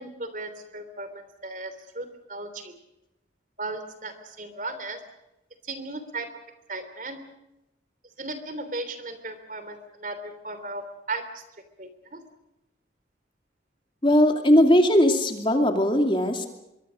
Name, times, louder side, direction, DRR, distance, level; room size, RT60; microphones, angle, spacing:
voice 1, 0.0-2.7 3.6-5.0 5.6-6.3 6.7-7.2 8.2-11.4 11.8-12.2, right 2 dB, 45° right, 10 dB, 3.3 m, -36 dB
voice 2, 14.0-16.5, equal, 25° left, 5 dB, 2.5 m, -19 dB
25.0 x 23.0 x 6.4 m, 0.92 s
head